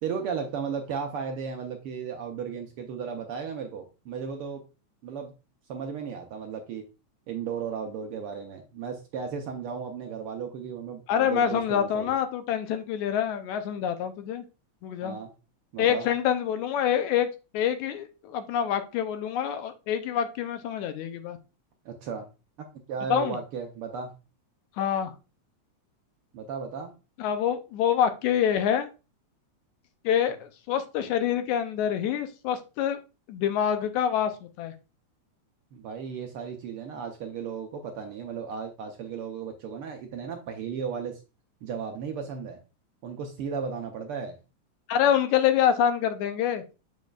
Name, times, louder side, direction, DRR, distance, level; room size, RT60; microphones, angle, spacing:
voice 1, 0.0-4.6 5.0-5.3 5.7-6.8 7.3-12.1 15.0-15.3 15.7-16.0 21.8-22.3 22.9-24.1 26.3-26.9 35.7-41.2 41.6-42.6 43.0-44.3, right 6 dB, 75° right, 1.3 m, -35 dB
voice 2, 11.1-14.4 14.8-15.2 15.8-17.3 17.5-21.4 23.1-23.4 24.8-25.1 27.2-28.9 30.0-33.0 33.3-34.7 44.9-46.6, left 9 dB, 80° left, 2.1 m, -26 dB
6.9 x 6.3 x 2.3 m
omnidirectional pair, 3.3 m